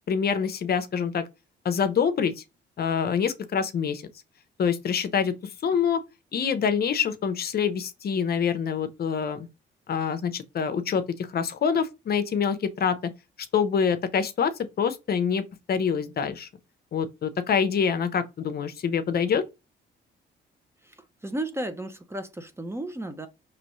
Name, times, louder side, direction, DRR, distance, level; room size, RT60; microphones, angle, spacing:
voice 1, 0.1-1.2 1.6-2.4 2.8-4.0 4.6-5.3 5.6-6.0 6.3-9.5 9.9-13.0 13.5-15.4 15.7-16.5 16.9-19.4, left 7 dB, 50° left, 0.7 m, -25 dB
voice 2, 20.8-23.3, right 1 dB, 10° right, 0.7 m, -34 dB
5.0 x 3.0 x 3.1 m
cardioid pair, 90°, 20 cm